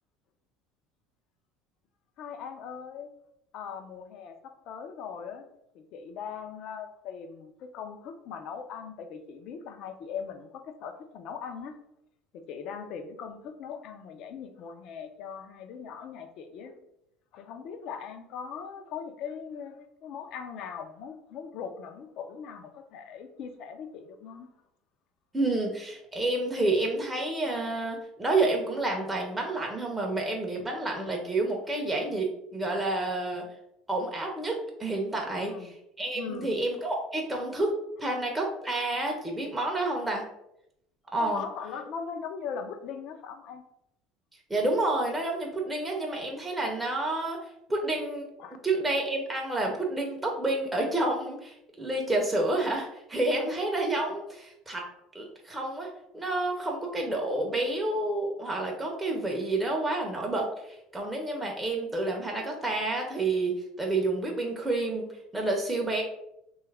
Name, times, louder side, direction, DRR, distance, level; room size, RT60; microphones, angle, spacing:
voice 1, 2.2-3.1 3.5-5.5 5.7-11.8 12.3-16.7 17.3-24.5 35.2-35.7 36.1-36.6 41.2-43.6 48.4-48.6, left 6 dB, 60° left, 7 dB, 0.4 m, -40 dB
voice 2, 25.3-33.5 33.9-40.2 41.1-41.4 44.5-48.2 48.6-54.8 55.1-65.1 65.3-66.0, right 2 dB, 10° right, 0 dB, 0.5 m, -29 dB
2.8 x 2.3 x 3.2 m, 0.81 s
supercardioid pair, 95°, 0 cm